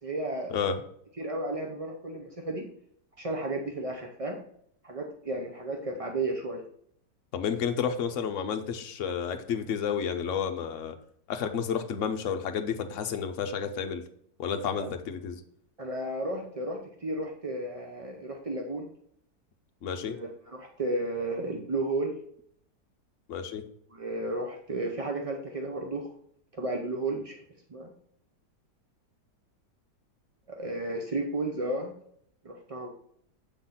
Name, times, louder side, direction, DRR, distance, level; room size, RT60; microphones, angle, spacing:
voice 1, 0.0-0.5 1.2-2.7 3.2-4.4 4.8-6.6 14.8-14.9 15.8-18.9 19.9-22.1 23.9-26.1 26.5-27.4 27.7-27.9 30.5-31.9 32.4-32.9, right 2 dB, 50° right, 1 dB, 0.4 m, -33 dB
voice 2, 7.3-10.9 11.3-14.0 14.4-15.4 19.8-20.1 23.3-23.6, left 7 dB, 55° left, 7 dB, 0.9 m, -31 dB
7.1 x 4.0 x 5.7 m, 0.66 s
omnidirectional pair, 1.8 m